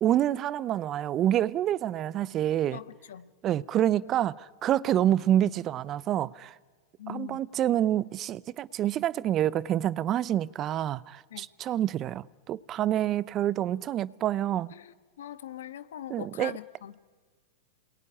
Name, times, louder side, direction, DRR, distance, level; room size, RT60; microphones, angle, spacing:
voice 1, 0.0-2.8 3.4-6.5 7.1-14.7 16.1-16.5, right 11 dB, 35° right, 0.7 m, -27 dB
voice 2, 2.7-3.3 7.0-7.4 11.3-11.5 14.7-17.0, left 11 dB, 75° left, 1.5 m, -42 dB
28.5 x 20.5 x 10.0 m
hypercardioid pair, 105°, 0 cm